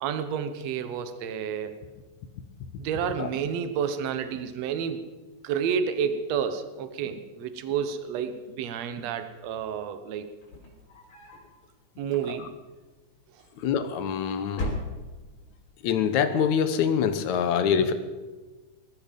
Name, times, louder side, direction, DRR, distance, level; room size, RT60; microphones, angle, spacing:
voice 1, 0.0-1.7 2.8-5.0 5.4-10.3 12.0-12.5 14.3-14.5, right 7 dB, 70° right, 10 dB, 2.2 m, -30 dB
sound 1, 10.3-11.5 12.0-12.7 13.6-14.1 14.5-15.4, left 1 dB, 45° left, 4.3 m, -36 dB
voice 2, 13.6-14.7 15.8-17.9, left 7 dB, 75° left, 10 dB, 2.4 m, -25 dB
19.5 x 13.5 x 5.3 m, 1.2 s
omnidirectional pair, 3.3 m